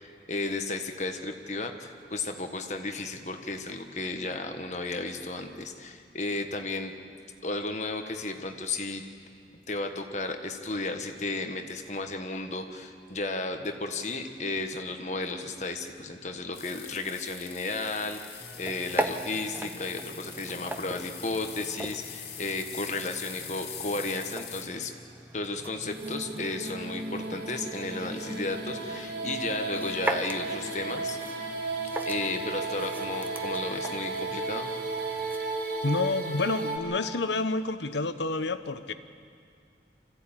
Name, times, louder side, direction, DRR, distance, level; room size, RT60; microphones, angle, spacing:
voice 1, 0.0-6.9 7.4-9.0 9.7-24.9 25.3-31.2 32.1-34.7, left 3 dB, 40° left, 5 dB, 1.4 m, -34 dB
sound 1, 16.5-24.7, left 8 dB, 65° left, 2.4 m, -43 dB
sound 2, 18.4-35.4, right 1 dB, 10° right, 0.8 m, -40 dB
sound 3, 25.8-36.8, right 3 dB, 60° right, 2.6 m, -34 dB
voice 2, 35.8-38.9, left 3 dB, 85° left, 11 dB, 1.0 m, -29 dB
25.0 x 15.0 x 8.9 m, 2.4 s
head